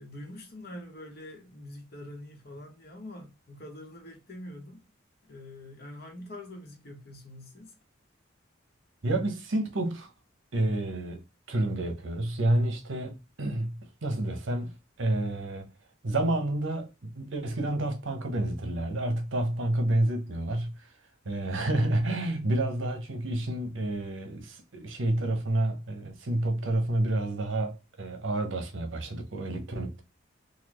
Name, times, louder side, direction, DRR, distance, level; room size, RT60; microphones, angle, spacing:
voice 1, 0.0-4.8 5.2-7.7 16.3-16.4 22.2-22.6, left 1 dB, 50° left, 1.1 m, -45 dB
voice 2, 9.0-10.1 10.5-11.2 11.5-15.7 16.0-20.9 21.2-30.0, right 1 dB, 75° right, 0.9 m, -29 dB
4.0 x 2.4 x 3.0 m
head